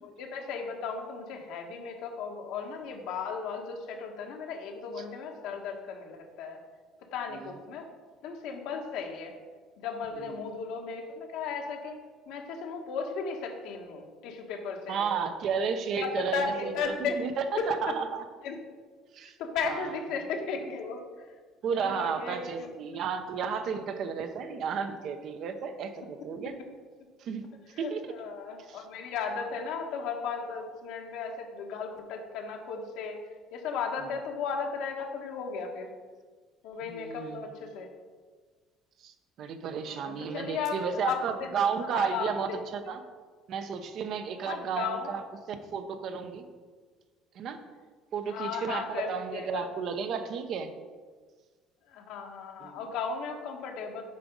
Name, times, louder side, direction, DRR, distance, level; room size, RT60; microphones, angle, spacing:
voice 1, 0.0-6.6 7.1-7.9 8.2-9.3 9.8-12.0 12.3-15.0 16.0-17.1 18.4-18.6 19.4-21.0 21.7-22.7 27.8-33.2 33.5-35.9 36.6-37.9 39.8-41.5 41.8-42.6 44.4-45.1 48.3-49.7 51.9-54.0, left 5 dB, 75° left, 2 dB, 1.3 m, -35 dB
voice 2, 14.9-18.2 19.1-19.3 19.7-20.0 20.6-20.7 21.6-26.5 27.2-27.4 27.8-28.1 28.7-28.8 34.0-34.1 36.8-37.5 39.0-43.0 43.5-45.2 45.5-46.5 47.3-47.6 48.1-50.7 52.6-52.8, right 6 dB, 60° right, 8 dB, 0.8 m, -33 dB
7.5 x 4.8 x 5.4 m, 1.5 s
cardioid pair, 110°, 0 cm